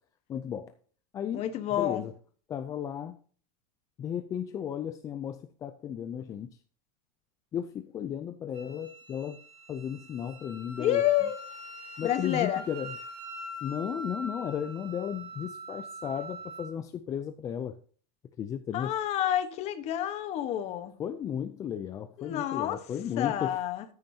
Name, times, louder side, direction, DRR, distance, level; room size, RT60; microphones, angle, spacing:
voice 1, 0.3-0.7 1.1-2.1 2.5-3.2 4.0-6.6 7.5-9.4 9.7-11.3 12.0-13.0 13.6-17.8 18.4-18.9 21.0-23.6, left 9 dB, 15° left, 0.4 m, -35 dB
voice 2, 1.3-2.0 10.8-11.4 12.0-12.6 18.7-20.9 22.2-22.8 23.2-23.8, left 11 dB, 30° left, 1.2 m, -28 dB
Wind instrument woodwind instrument, 8.5-16.7, right 1 dB, 30° right, 4.3 m, -43 dB
14.0 x 9.3 x 2.8 m
supercardioid pair, 170°, 21 cm